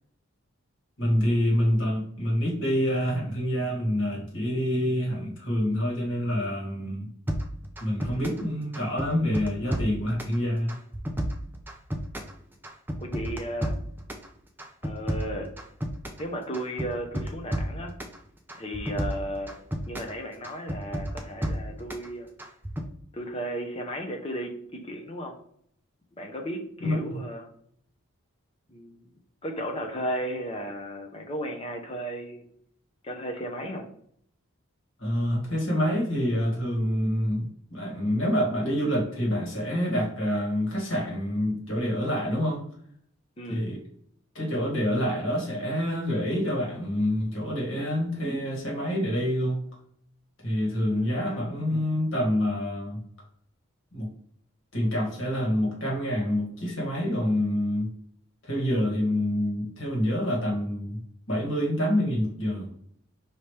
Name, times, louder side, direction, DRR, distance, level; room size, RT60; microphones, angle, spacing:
voice 1, 1.0-7.1 7.8-10.8 26.8-27.2 35.0-42.6 43.5-43.8 44.4-49.6 50.4-53.0 53.9-54.1 54.7-57.9 58.4-61.0 61.3-62.8, equal, 60° left, -3 dB, 1.7 m, -27 dB
sound 1, 7.3-8.5 8.7-10.4 10.7-12.4 12.6-14.3 14.6-16.3 16.5-18.2 18.5-20.1 20.4-22.1 22.4-22.9, equal, 10° right, 0.4 m, -31 dB
voice 2, 8.0-8.4 13.0-13.8 14.8-15.5 16.2-17.9 18.6-19.6 19.9-22.3 23.1-25.4 26.2-27.5 28.7-29.0 29.4-32.4 33.0-33.9 43.4-43.6 50.8-51.5, equal, 25° left, 2 dB, 0.7 m, -35 dB
4.9 x 2.9 x 3.2 m, 0.64 s
head